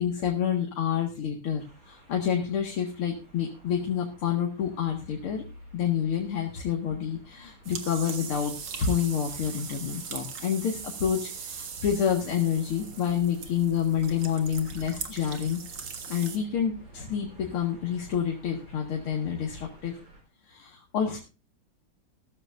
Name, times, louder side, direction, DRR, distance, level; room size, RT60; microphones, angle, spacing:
voice 1, 0.0-5.4 5.7-15.6 16.1-19.9 20.5-21.2, left 8 dB, 80° left, 0 dB, 2.7 m, -28 dB
sound 1, 1.6-20.2, right 1 dB, 40° right, 5.2 m, -51 dB
sound 2, 7.6-16.4, right 6 dB, 75° right, 2.5 m, -40 dB
15.5 x 13.5 x 2.6 m, 0.30 s
omnidirectional pair, 2.4 m